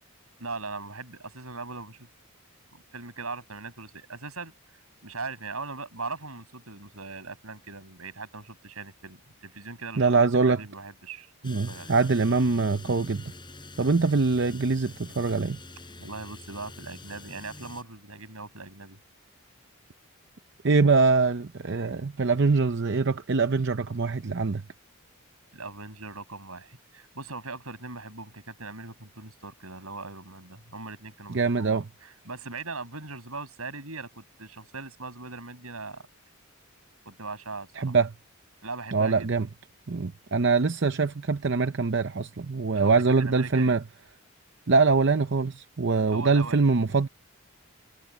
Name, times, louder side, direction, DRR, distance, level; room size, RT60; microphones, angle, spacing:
voice 1, 0.4-2.1 2.7-4.5 5.0-11.3 11.6-11.9 16.0-19.0 25.5-36.1 37.1-37.9 38.6-39.3 40.5-40.6 42.7-42.9 43.2-43.8 46.1-46.6, right 3 dB, 75° right, 7.8 m, -40 dB
voice 2, 10.0-10.6 11.4-13.3 13.8-15.6 20.6-24.6 31.3-31.9 37.8-38.1 38.9-39.5 39.9-43.8 44.7-47.1, right 4 dB, 55° right, 0.7 m, -23 dB
sound 1, 11.4-17.8, left 2 dB, 20° left, 4.5 m, -46 dB
head